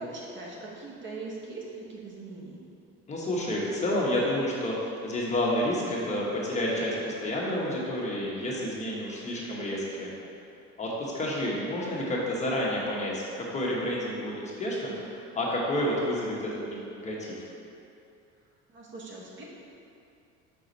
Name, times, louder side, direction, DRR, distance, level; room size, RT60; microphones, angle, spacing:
voice 1, 0.0-2.6 18.7-19.4, right 3 dB, 40° right, -3 dB, 1.0 m, -41 dB
voice 2, 3.1-10.1 10.8-17.4, left 1 dB, 25° left, -4 dB, 1.1 m, -30 dB
5.1 x 4.9 x 4.0 m, 2.6 s
cardioid pair, 125°, 30 cm